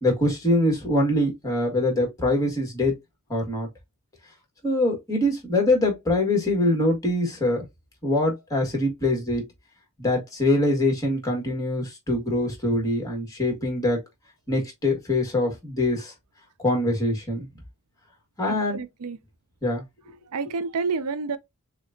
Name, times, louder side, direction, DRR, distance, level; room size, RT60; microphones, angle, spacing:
voice 1, 0.0-2.9 3.3-3.7 4.6-7.6 8.0-9.5 10.0-14.0 14.5-16.1 16.6-17.5 18.4-18.8 19.6-19.8, left 1 dB, 15° left, 1.6 m, -23 dB
voice 2, 18.5-19.2 20.3-21.4, right 4 dB, 85° right, 0.5 m, -29 dB
6.3 x 2.3 x 2.6 m
head